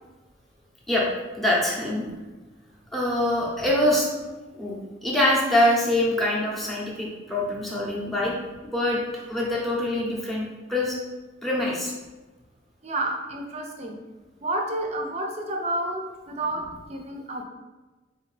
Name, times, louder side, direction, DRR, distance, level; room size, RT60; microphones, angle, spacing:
voice 1, 1.4-2.0 2.9-4.3 4.6-4.8 5.0-8.3 8.7-9.0 9.3-11.0 11.4-11.9, left 1 dB, ahead, -4 dB, 0.8 m, -24 dB
voice 2, 12.8-14.0 14.4-17.4, right 1 dB, 35° right, 2 dB, 0.6 m, -30 dB
4.2 x 3.4 x 3.2 m, 1.2 s
head